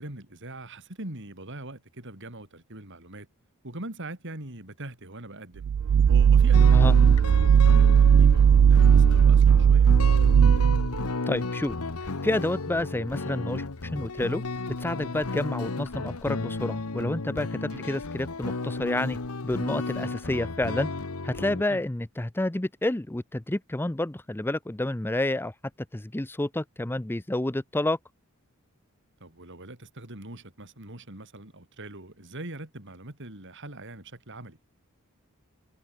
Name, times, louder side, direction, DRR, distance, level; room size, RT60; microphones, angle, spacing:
voice 1, 0.0-3.3 3.6-5.7 6.1-9.9 17.7-17.8 21.7-21.8 29.2-34.6, right 1 dB, 55° right, 4.3 m, -41 dB
sound 1, 5.6-11.1, right 7 dB, 90° right, 0.3 m, -17 dB
sound 2, 6.5-21.6, left 3 dB, 90° left, 1.2 m, -33 dB
voice 2, 11.3-11.8 12.2-13.6 13.9-14.4 14.8-19.2 19.4-20.9 21.2-25.5 25.9-28.0, left 1 dB, 10° left, 0.5 m, -29 dB
head